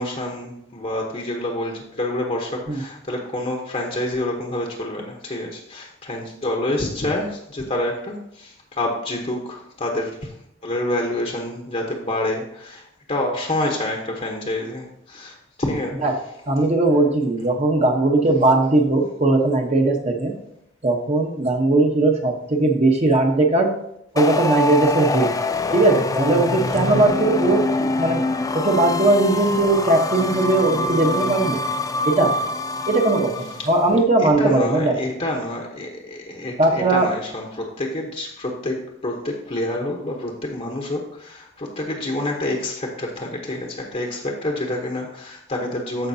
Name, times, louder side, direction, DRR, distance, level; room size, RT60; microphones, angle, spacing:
voice 1, 0.0-10.4 10.6-16.0 33.6-33.7 34.2-46.1, left 1 dB, 35° left, 1 dB, 1.0 m, -27 dB
voice 2, 16.5-20.3 20.8-23.7 24.1-25.3 25.7-28.2 28.5-31.6 32.0-32.3 32.9-34.9 36.6-37.1, right 2 dB, 35° right, 2 dB, 1.0 m, -19 dB
sound 1, 24.2-33.8, left 2 dB, 20° left, 0.4 m, -25 dB
13.5 x 5.2 x 2.8 m, 0.74 s
head